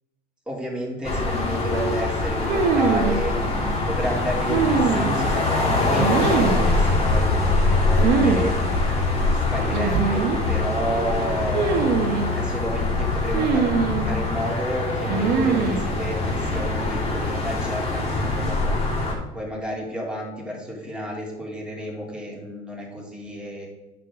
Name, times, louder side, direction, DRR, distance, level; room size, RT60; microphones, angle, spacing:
voice 1, 0.5-8.9 9.3-11.9 12.3-23.7, equal, 5° right, -3 dB, 2.8 m, -31 dB
sound 1, 1.0-19.1, left 2 dB, 40° left, 3.0 m, -24 dB
sound 2, 2.5-3.2 4.5-5.3 6.0-6.7 8.0-8.5 8.7-8.8 9.7-10.4 11.5-12.3 13.3-14.1 15.1-15.9, right 5 dB, 70° right, 1.1 m, -22 dB
8.9 x 6.7 x 3.6 m, 1.1 s
supercardioid pair, 100°, 17 cm